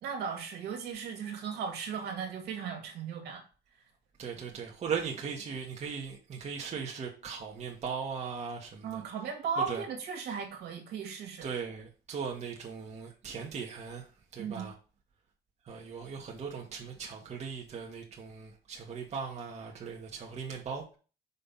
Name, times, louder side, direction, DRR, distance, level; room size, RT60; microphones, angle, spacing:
voice 1, 0.0-3.4 8.8-11.5 14.4-14.7, right 6 dB, 70° right, 1.9 m, -36 dB
voice 2, 4.2-9.0 9.7-9.8 11.4-14.1 14.3-14.7 15.7-21.0, right 6 dB, 40° right, 1.3 m, -38 dB
5.4 x 3.4 x 5.5 m
cardioid pair, 110°, 17 cm